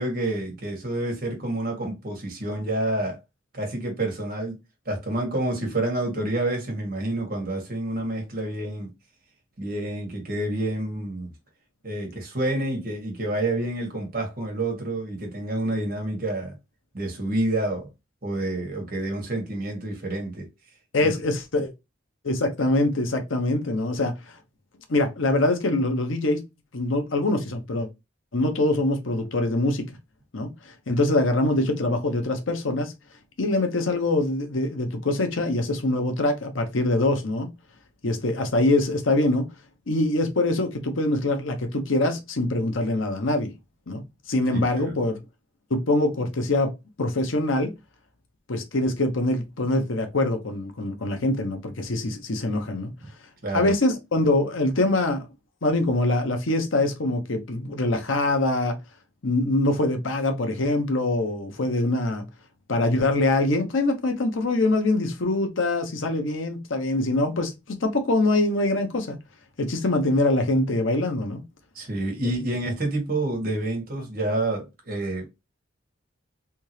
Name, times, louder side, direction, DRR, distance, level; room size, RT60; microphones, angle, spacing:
voice 1, 0.0-3.2 3.5-4.6 4.8-8.9 9.6-11.3 11.8-16.6 16.9-17.9 18.2-20.5 21.0-21.1 44.5-44.9 53.4-53.7 71.7-75.3, right 2 dB, 50° right, 1.6 m, -28 dB
voice 2, 20.9-21.7 22.2-24.4 24.9-26.4 26.7-27.9 28.3-29.9 30.3-32.9 33.4-37.5 38.0-39.5 39.9-43.5 43.9-45.2 45.7-46.7 47.0-47.7 48.5-52.9 53.5-55.3 55.6-58.8 59.2-62.3 62.7-69.2 69.6-71.4, left 2 dB, 90° left, 0.9 m, -24 dB
3.5 x 2.8 x 3.1 m
head